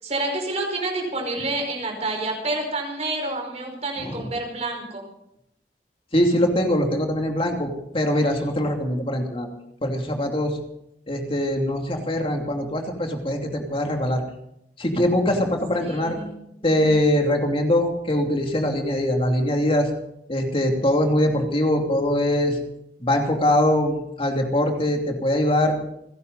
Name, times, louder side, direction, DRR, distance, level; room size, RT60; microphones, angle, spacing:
voice 1, 0.0-5.0 15.8-16.4, right 2 dB, 40° right, 2 dB, 5.1 m, -28 dB
voice 2, 4.0-4.3 6.1-9.5 9.8-10.6 11.1-14.2 14.8-16.2 16.6-19.9 20.3-22.6 23.0-25.8, left 1 dB, 30° left, 2 dB, 2.8 m, -22 dB
30.0 x 11.0 x 4.1 m, 0.77 s
head